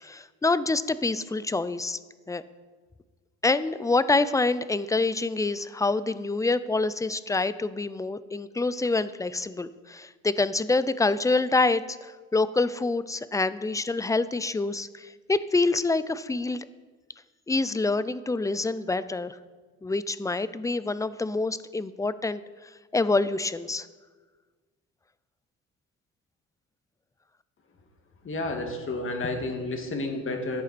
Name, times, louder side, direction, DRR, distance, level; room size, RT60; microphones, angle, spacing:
voice 1, 0.0-2.0 2.3-2.4 3.4-16.7 17.5-19.4 19.8-22.4 22.9-23.9, left 3 dB, 10° left, 15 dB, 0.4 m, -26 dB
voice 2, 28.2-30.6, left 2 dB, 45° left, 4 dB, 1.9 m, -31 dB
14.0 x 8.1 x 4.2 m, 1.4 s
cardioid pair, 90°, 30 cm